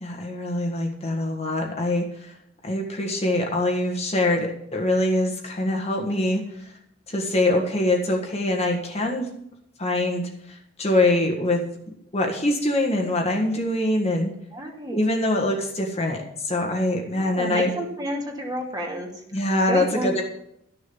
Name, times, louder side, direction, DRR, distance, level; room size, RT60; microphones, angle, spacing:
voice 1, 0.0-2.3 2.6-6.7 7.1-9.3 9.8-11.6 12.1-14.3 14.9-17.7 19.3-20.2, left 1 dB, 30° left, 1 dB, 1.7 m, -24 dB
voice 2, 14.5-15.0 17.1-20.2, equal, 20° right, 0 dB, 2.4 m, -31 dB
13.5 x 6.8 x 7.1 m, 0.77 s
head